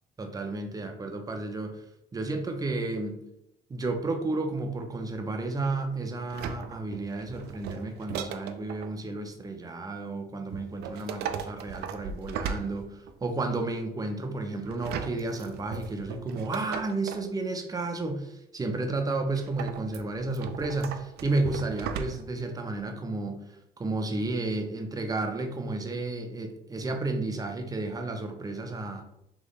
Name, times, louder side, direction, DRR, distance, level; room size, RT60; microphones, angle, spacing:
voice 1, 0.2-1.8 2.1-3.2 3.7-23.4 23.8-29.0, right 2 dB, 20° right, 4 dB, 0.6 m, -32 dB
sound 1, 6.3-8.9 10.5-13.3 14.7-17.3 19.4-22.4 22.8-22.9, right 7 dB, 75° right, 0.4 m, -37 dB
3.2 x 3.0 x 3.9 m, 0.80 s
cardioid pair, 110°, 17 cm